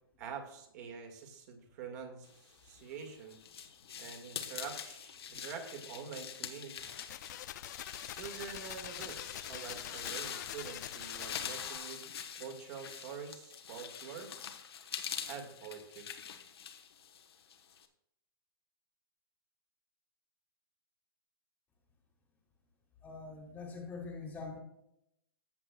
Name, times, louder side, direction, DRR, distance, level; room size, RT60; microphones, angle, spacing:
voice 1, 0.2-3.4 4.0-7.0 8.1-12.0 12.4-14.3 15.3-16.1, right 6 dB, 40° right, 3 dB, 1.9 m, -46 dB
sound 1, 2.7-17.9, left 8 dB, 75° left, 1.1 m, -44 dB
sound 2, 6.8-11.8, left 12 dB, 45° left, 0.4 m, -45 dB
voice 2, 23.0-24.6, left 4 dB, 15° left, 1 dB, 1.4 m, -44 dB
14.0 x 7.8 x 2.3 m, 0.81 s
hypercardioid pair, 155°, 13 cm